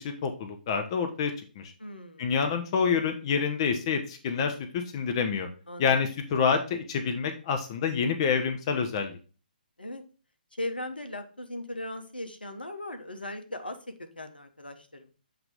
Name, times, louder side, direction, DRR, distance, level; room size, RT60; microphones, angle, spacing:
voice 1, 0.0-1.7 2.2-5.5 5.8-9.1, left 6 dB, 35° left, 6 dB, 0.8 m, -27 dB
voice 2, 1.8-2.3 5.7-6.0 9.8-10.0 10.6-15.1, left 1 dB, 80° left, 8 dB, 1.1 m, -38 dB
7.8 x 2.9 x 5.1 m, 0.37 s
figure-of-eight pair, 135°, 5 cm